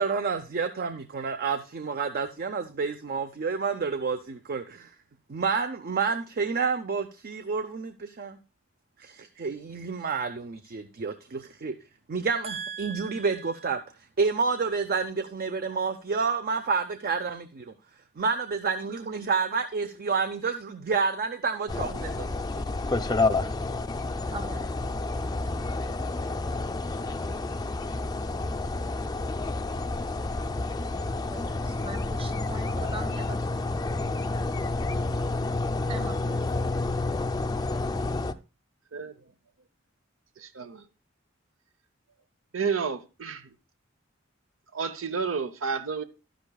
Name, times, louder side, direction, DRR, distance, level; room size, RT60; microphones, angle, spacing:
voice 1, 0.0-4.9 5.3-8.4 9.0-11.7 12.1-13.8 14.2-17.7 18.2-22.6 23.1-23.2, right 5 dB, 50° right, 0.6 m, -29 dB
voice 2, 12.4-13.6 24.3-25.0 31.0-34.0 35.9-36.7, right 3 dB, 30° right, 1.1 m, -41 dB
sound 1, 21.7-38.3, left 2 dB, 20° left, 0.4 m, -29 dB
voice 3, 40.4-40.8 42.5-43.5 44.7-46.0, right 5 dB, 90° right, 0.7 m, -31 dB
11.5 x 10.0 x 2.3 m
head